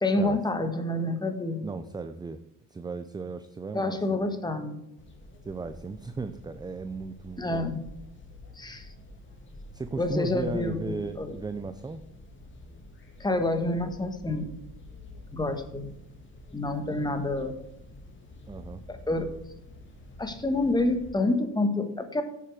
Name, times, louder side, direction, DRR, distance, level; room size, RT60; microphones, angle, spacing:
voice 1, 0.0-1.6 3.7-4.8 7.4-7.8 8.5-8.9 10.0-11.3 13.2-14.6 15.3-15.9 16.5-17.6 18.9-19.3 20.2-22.2, left 2 dB, 10° left, 7 dB, 1.4 m, -28 dB
voice 2, 1.6-2.4 2.7-4.3 5.5-7.7 9.7-12.0 18.5-18.8, right 4 dB, 10° right, 10 dB, 0.5 m, -36 dB
sound 1, 5.0-21.1, left 1 dB, 35° left, 2.2 m, -48 dB
10.0 x 7.5 x 4.8 m, 0.86 s
cardioid pair, 110°, 34 cm